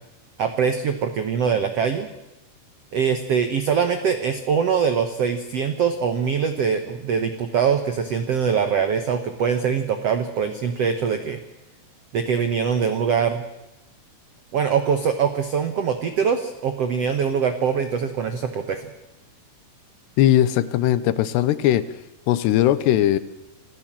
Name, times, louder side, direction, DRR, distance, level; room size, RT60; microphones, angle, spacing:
voice 1, 0.4-2.1 2.9-11.4 12.1-13.4 14.5-18.9, right 6 dB, 90° right, 8 dB, 1.3 m, -23 dB
voice 2, 20.2-21.8 22.3-23.2, left 12 dB, 85° left, 15 dB, 3.1 m, -19 dB
26.5 x 16.0 x 7.5 m, 0.98 s
omnidirectional pair, 4.8 m